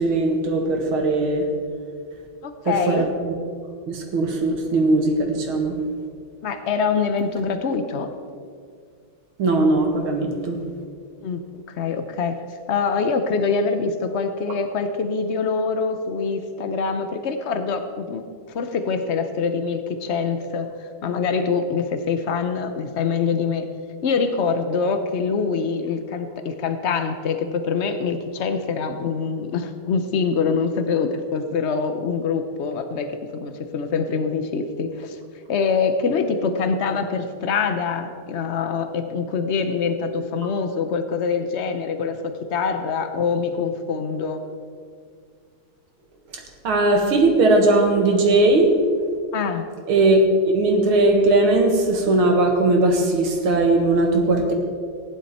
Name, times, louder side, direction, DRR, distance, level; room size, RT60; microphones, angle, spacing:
voice 1, 0.0-1.5 2.6-3.3 3.9-5.8 9.4-10.6 46.3-48.7 49.9-54.5, right 2 dB, 80° right, 2 dB, 2.5 m, -19 dB
voice 2, 2.4-3.1 6.4-8.1 11.2-11.4 11.7-23.7 24.0-35.2 35.5-44.4 49.3-49.7, left 5 dB, 75° left, 8 dB, 0.6 m, -24 dB
15.5 x 10.5 x 4.3 m, 2.1 s
omnidirectional pair, 2.3 m